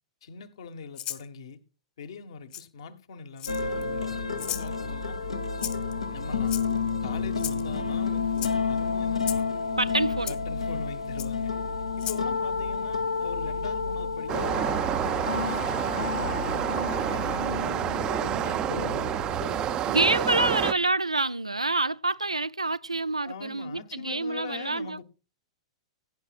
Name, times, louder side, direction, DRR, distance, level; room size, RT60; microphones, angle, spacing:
voice 1, 0.2-1.6 2.0-5.2 6.1-6.6 7.0-9.5 10.3-11.5 12.0-16.6 17.1-20.6 23.2-25.0, left 5 dB, 60° left, 1.4 m, -42 dB
Rattle (instrument), 0.9-1.2 2.5-2.6 3.4-3.8 4.4-4.7 5.6-5.9 6.5-6.9 7.4-7.6 8.3-8.5 9.2-9.4 10.3-10.4 11.2-11.3 12.0-12.2, left 11 dB, 30° left, 1.1 m, -34 dB
sound 1, 3.5-20.3, left 5 dB, 85° left, 1.5 m, -30 dB
voice 2, 9.7-10.4 19.8-25.0, right 2 dB, 85° right, 0.4 m, -27 dB
sound 2, 14.3-20.7, right 11 dB, 25° right, 0.6 m, -29 dB
17.0 x 9.1 x 2.4 m
figure-of-eight pair, 105°, 3 cm